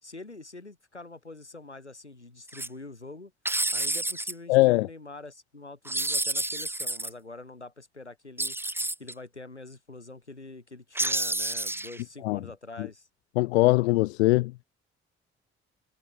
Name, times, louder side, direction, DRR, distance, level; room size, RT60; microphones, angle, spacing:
voice 1, 0.0-3.3 3.7-8.6 9.0-13.1, left 2 dB, 90° left, 2.3 m, -45 dB
sound 1, 2.5-2.7 3.4-4.3 5.8-7.1 8.4-9.1 10.9-12.0, right 1 dB, 5° right, 1.2 m, -29 dB
voice 2, 4.5-4.9 12.2-12.4 12.8-12.9 13.4-14.5, left 20 dB, 70° left, 0.5 m, -21 dB
figure-of-eight pair, 45°, 33 cm